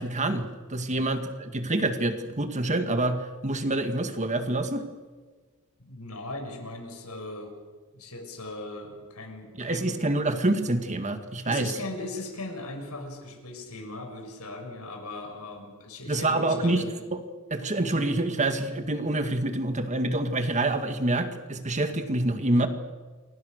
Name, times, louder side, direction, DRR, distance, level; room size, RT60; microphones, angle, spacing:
voice 1, 0.0-4.8 9.6-11.7 16.1-16.8 17.1-17.2 17.5-22.7, right 2 dB, 35° right, 7 dB, 2.0 m, -27 dB
voice 2, 5.8-7.5 7.9-10.1 11.4-16.9, left 2 dB, 80° left, 4 dB, 6.3 m, -38 dB
28.5 x 23.5 x 6.6 m, 1.4 s
head